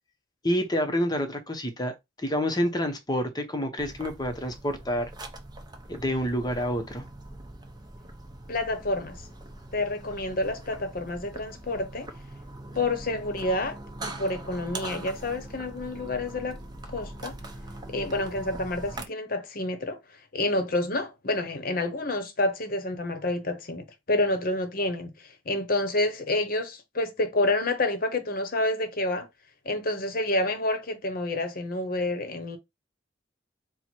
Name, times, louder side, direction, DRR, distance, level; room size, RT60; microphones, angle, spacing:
voice 1, 0.4-5.1 5.9-7.0, equal, 20° left, 0.7 m, -28 dB
sound 1, 3.8-19.1, right 2 dB, 20° right, 0.6 m, -42 dB
voice 2, 8.5-9.2 9.7-12.1 12.7-16.6 16.9-17.4 17.9-20.0 20.3-29.3 29.6-32.6, left 2 dB, 50° left, 0.8 m, -28 dB
4.4 x 2.1 x 4.3 m
head